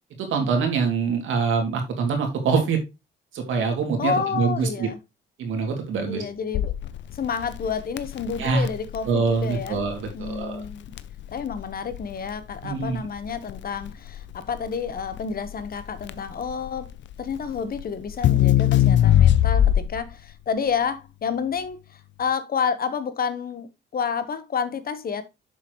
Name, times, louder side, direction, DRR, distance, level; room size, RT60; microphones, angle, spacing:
voice 1, 0.2-2.8 3.3-4.9 5.4-6.2 8.4-8.7 9.1-10.6 12.6-13.0, right 5 dB, 80° right, 2.5 m, -24 dB
voice 2, 4.0-5.0 6.1-6.7 7.1-9.8 10.1-10.9 11.3-16.9 17.2-25.2, left 6 dB, 50° left, 1.2 m, -29 dB
Crackle, 6.5-20.1, left 11 dB, 70° left, 0.6 m, -23 dB
7.1 x 6.6 x 3.1 m
cardioid pair, 90°, 20 cm